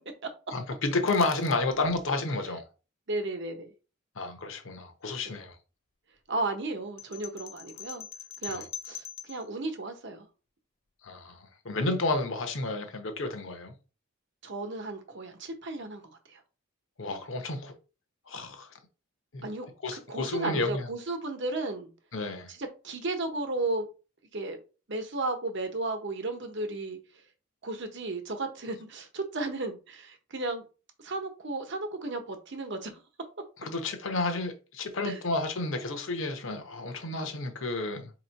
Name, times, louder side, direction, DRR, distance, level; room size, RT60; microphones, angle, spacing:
voice 1, 0.5-2.7 4.2-5.6 8.5-8.7 11.0-13.7 17.0-17.7 18.3-18.7 19.3-19.5 19.8-20.9 22.1-22.5 33.6-38.1, left 3 dB, 65° left, 0.9 m, -31 dB
voice 2, 3.1-3.7 5.2-5.3 6.3-8.1 8.4-10.3 14.4-16.0 16.3-16.4 19.4-21.9 22.5-23.9 24.3-24.6 24.9-27.0 27.6-30.6 31.0-32.9 35.0-35.2, right 2 dB, 55° right, 0.9 m, -34 dB
sound 1, 7.0-9.5, left 9 dB, 30° left, 0.4 m, -42 dB
4.3 x 3.0 x 4.0 m
head